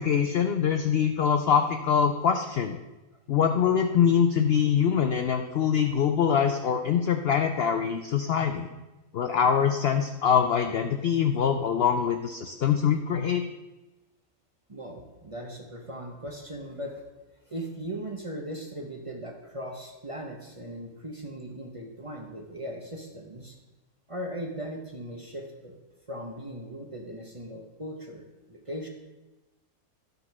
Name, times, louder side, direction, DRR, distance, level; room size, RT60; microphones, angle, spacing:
voice 1, 0.0-2.8 3.3-8.7 9.1-13.4, left 7 dB, 70° left, 7 dB, 0.6 m, -24 dB
voice 2, 14.7-17.0 17.5-23.6 24.1-25.8 26.1-28.9, equal, 25° right, 1 dB, 0.8 m, -38 dB
12.0 x 4.0 x 5.9 m, 1.1 s
omnidirectional pair, 1.6 m